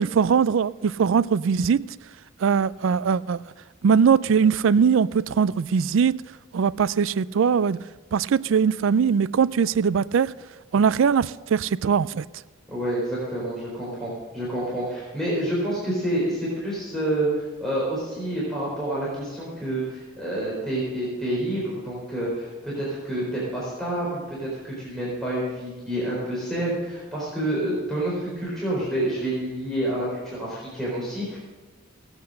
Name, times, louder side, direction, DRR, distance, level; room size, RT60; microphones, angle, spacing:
voice 1, 0.0-1.8 2.4-3.4 3.8-6.2 6.5-7.8 8.1-10.3 10.7-12.2, right 6 dB, 75° right, 0.4 m, -21 dB
voice 2, 12.7-31.4, right 1 dB, ahead, 4.2 m, -28 dB
18.0 x 8.1 x 6.5 m
head